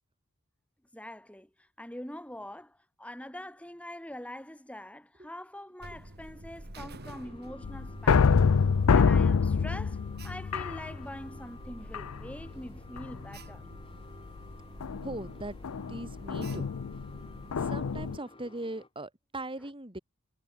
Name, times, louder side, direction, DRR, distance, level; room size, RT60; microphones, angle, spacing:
voice 1, 0.9-8.4 8.9-13.6, left 1 dB, 5° left, 4.9 m, -44 dB
Alarm, 5.8-18.2, right 1 dB, 50° right, 4.1 m, -47 dB
sound 1, 7.0-18.9, left 2 dB, 25° left, 2.9 m, -54 dB
sound 2, 7.6-11.4 11.9-12.5 13.0-13.4 14.8-18.2, left 5 dB, 75° left, 0.5 m, -26 dB
voice 2, 15.0-15.6 15.9-16.7 17.6-20.0, right 1 dB, 25° right, 4.3 m, -39 dB
head